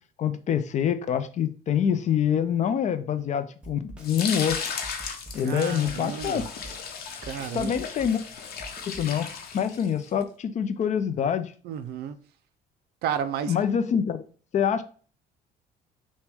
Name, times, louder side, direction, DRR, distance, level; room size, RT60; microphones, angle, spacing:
voice 1, 0.2-4.6 5.3-6.4 7.5-8.2 8.9-11.5 13.5-14.2 14.5-14.8, left 8 dB, 45° left, 0.5 m, -26 dB
Snare drum, 3.6-9.1, right 1 dB, 5° right, 0.9 m, -45 dB
sound 1, 4.0-10.1, left 6 dB, 65° left, 0.9 m, -36 dB
voice 2, 5.4-6.5 7.2-7.7 11.6-12.2 13.0-13.5, right 8 dB, 70° right, 0.5 m, -32 dB
5.9 x 2.2 x 3.4 m
cardioid pair, 110°, 17 cm